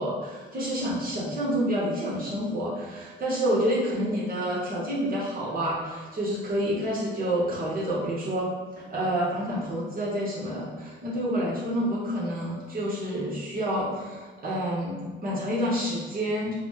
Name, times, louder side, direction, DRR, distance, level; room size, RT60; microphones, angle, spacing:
voice 1, 0.0-8.5 8.9-16.5, equal, 45° right, -6 dB, 1.0 m, -28 dB
4.0 x 2.0 x 3.0 m, 1.4 s
cardioid pair, 90°, 20 cm